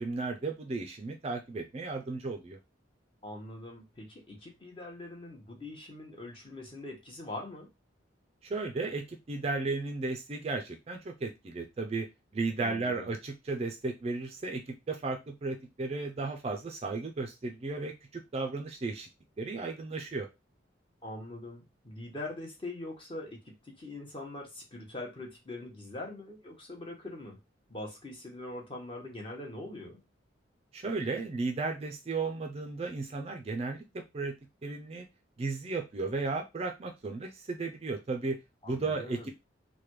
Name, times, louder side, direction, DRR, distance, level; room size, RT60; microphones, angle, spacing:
voice 1, 0.0-2.6 8.4-12.1 12.3-19.1 19.4-20.3 30.7-33.8 34.1-34.3 34.6-35.1 35.4-38.4 38.6-39.3, right 3 dB, 30° right, 4 dB, 0.3 m, -34 dB
voice 2, 3.2-7.7 12.6-13.1 21.0-27.4 27.7-30.0 38.6-39.3, left 2 dB, 25° left, 0 dB, 0.9 m, -43 dB
3.3 x 2.2 x 2.9 m, 0.23 s
head